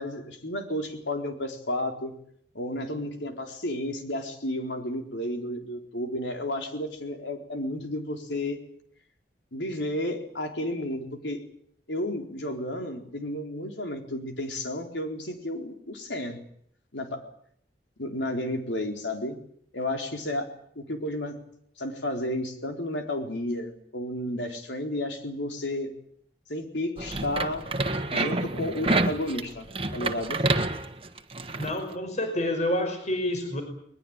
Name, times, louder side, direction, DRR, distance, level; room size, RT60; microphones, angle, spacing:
voice 1, 0.0-2.1 2.5-8.6 9.5-11.4 11.9-16.4 16.9-17.2 18.0-19.4 19.7-21.4 21.8-25.9 26.5-27.7 28.1-29.7 29.9-30.4, left 1 dB, 80° left, 4 dB, 4.2 m, -32 dB
sound 1, 27.0-31.8, right 2 dB, 30° right, 1.5 m, -28 dB
voice 2, 31.6-33.6, left 1 dB, 40° left, 6 dB, 5.2 m, -28 dB
21.0 x 21.0 x 9.0 m, 0.66 s
head